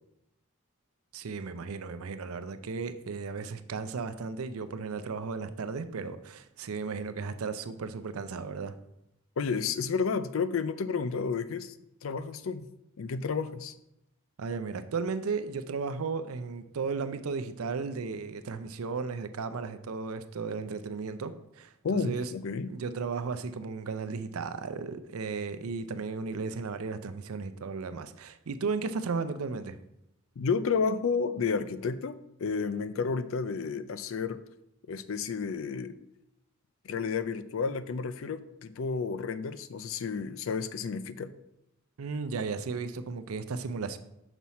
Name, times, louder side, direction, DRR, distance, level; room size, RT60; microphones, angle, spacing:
voice 1, 1.1-8.8 14.4-22.3 22.7-29.8 42.0-44.0, right 4 dB, 80° right, 0.5 m, -35 dB
voice 2, 9.4-11.7 12.0-12.7 13.0-13.7 21.8-22.7 30.4-34.4 34.9-35.9 36.8-41.3, left 5 dB, 65° left, 0.4 m, -31 dB
6.0 x 5.5 x 4.2 m
head